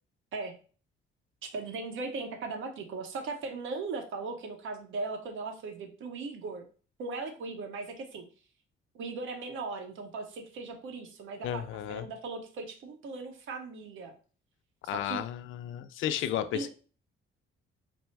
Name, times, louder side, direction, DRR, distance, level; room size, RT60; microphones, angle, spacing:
voice 1, 1.4-6.6 7.0-8.2 8.9-14.1 14.8-15.2 16.5-16.7, right 3 dB, 70° right, 0.9 m, -38 dB
voice 2, 11.4-12.1 14.8-16.7, left 10 dB, 70° left, 0.4 m, -33 dB
4.4 x 2.0 x 4.4 m
cardioid pair, 130°, 21 cm